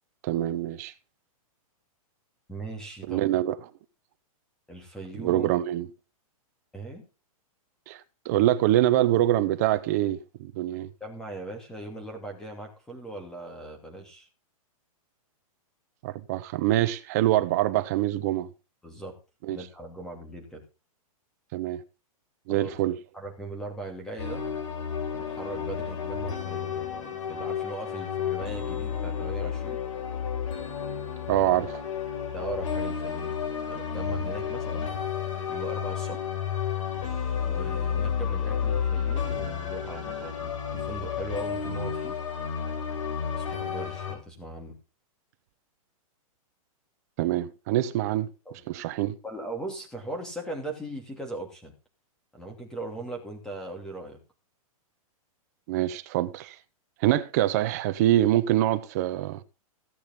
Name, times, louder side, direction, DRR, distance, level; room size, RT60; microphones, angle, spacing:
voice 1, 0.2-0.9 3.1-3.6 5.2-5.9 7.9-10.9 16.0-18.5 19.4-19.6 21.5-21.8 22.5-23.0 31.3-31.8 47.2-48.3 48.7-49.2 55.7-56.6 57.0-59.4, right 14 dB, 25° right, 0.8 m, -25 dB
voice 2, 2.5-3.2 4.7-5.5 6.7-7.0 11.0-14.3 18.8-19.1 19.5-20.6 22.5-22.8 23.1-24.4 25.1-29.8 32.3-33.3 33.7-34.9 35.5-36.2 37.4-42.2 43.3-44.8 48.5-48.6 49.2-51.7 52.3-54.2, right 2 dB, 5° left, 2.6 m, -39 dB
sound 1, 24.2-44.2, left 7 dB, 60° left, 5.3 m, -31 dB
17.0 x 8.6 x 3.7 m
hypercardioid pair, 175°, 19 cm